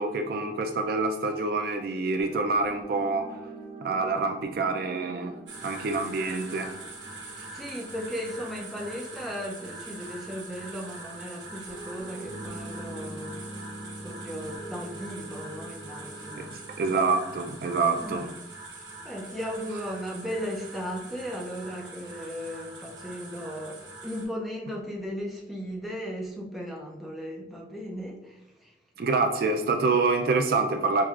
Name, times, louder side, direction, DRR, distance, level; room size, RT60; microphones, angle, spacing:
voice 1, 0.0-3.4 3.8-6.7 16.5-18.3 29.0-31.1, right 3 dB, 55° right, 5 dB, 0.3 m, -26 dB
sound 1, 2.2-10.3 11.7-18.3, right 1 dB, 65° left, 1.1 m, -44 dB
sound 2, 5.5-24.2, right 3 dB, 85° right, 1.3 m, -43 dB
voice 2, 7.5-13.4 14.0-16.5 18.0-18.5 19.0-28.7, equal, ahead, -3 dB, 0.5 m, -36 dB
6.1 x 2.3 x 2.4 m, 0.87 s
head